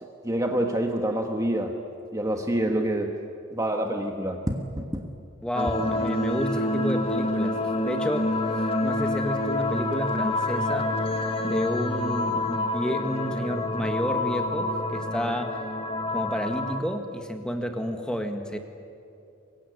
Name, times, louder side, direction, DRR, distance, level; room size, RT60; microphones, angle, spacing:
voice 1, 0.0-1.7 2.1-3.1 3.5-5.1, right 1 dB, 15° right, 3 dB, 1.4 m, -27 dB
voice 2, 5.4-8.3 8.8-10.9 11.4-15.6 16.1-18.6, equal, 5° left, 5 dB, 1.7 m, -30 dB
sound 1, 5.5-16.8, left 2 dB, 25° left, 1.4 m, -27 dB
24.5 x 22.5 x 9.8 m, 2.6 s
head